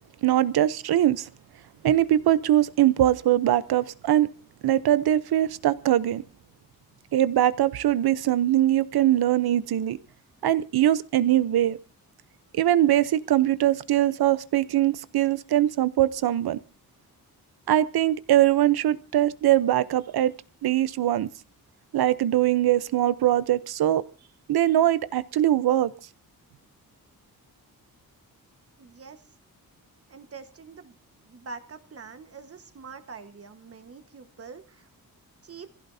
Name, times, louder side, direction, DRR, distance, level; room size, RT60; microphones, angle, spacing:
voice 1, 0.2-1.3 1.8-4.3 4.6-6.2 7.1-10.0 10.4-11.8 12.5-16.6 17.7-20.4 20.6-21.3 21.9-24.0 24.5-25.9, right 12 dB, 85° right, 0.8 m, -22 dB
voice 2, 28.8-29.2 30.1-34.9 35.4-35.7, right 5 dB, 40° right, 1.5 m, -44 dB
25.5 x 16.0 x 2.7 m
wide cardioid pair, 145°, 37 cm